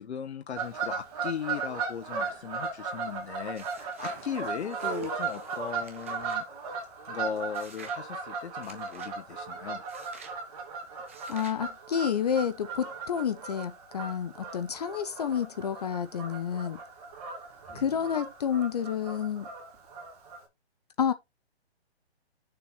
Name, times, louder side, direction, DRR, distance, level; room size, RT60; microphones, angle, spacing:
voice 1, 0.0-6.5 7.1-9.8 17.7-17.8, left 7 dB, 80° left, 0.9 m, -38 dB
Fowl / Bird vocalization bird call bird song, 0.5-20.4, right 5 dB, 35° right, 2.8 m, -37 dB
sound 1, 3.5-4.2 4.8-6.4 7.5-8.0 8.6-9.1 9.9-10.4 11.1-11.6, right 5 dB, 15° right, 0.4 m, -51 dB
voice 2, 11.3-16.8 17.7-19.5 21.0-21.1, left 8 dB, 35° left, 0.6 m, -30 dB
6.8 x 4.8 x 4.4 m
hypercardioid pair, 160°, 33 cm